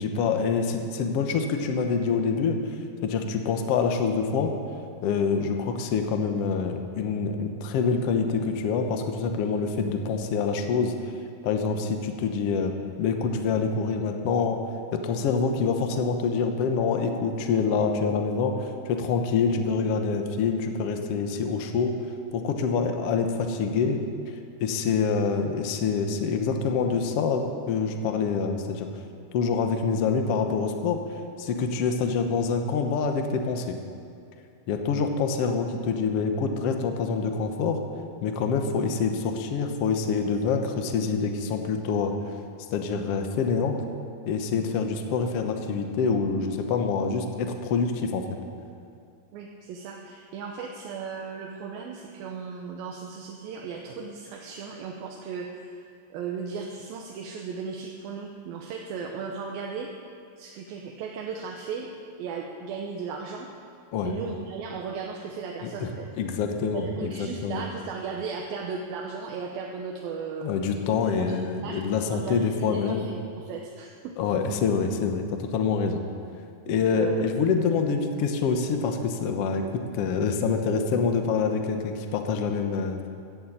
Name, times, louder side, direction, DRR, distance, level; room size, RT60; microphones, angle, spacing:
voice 1, 0.0-2.6 3.0-4.5 5.0-10.9 11.4-14.6 14.9-22.0 22.3-28.9 29.3-31.0 31.4-33.8 34.7-37.8 38.2-42.1 42.7-43.8 44.2-48.2 63.9-64.1 65.6-65.9 66.2-67.6 70.4-73.0 74.2-76.0 76.7-83.1, left 5 dB, 75° left, 5 dB, 1.4 m, -26 dB
voice 2, 49.3-59.9 60.4-61.9 62.2-63.5 64.0-66.1 66.7-70.6 71.0-71.8 72.1-74.1 76.7-77.3, right 5 dB, 80° right, 0 dB, 2.7 m, -36 dB
14.5 x 8.7 x 8.7 m, 2.4 s
omnidirectional pair, 4.3 m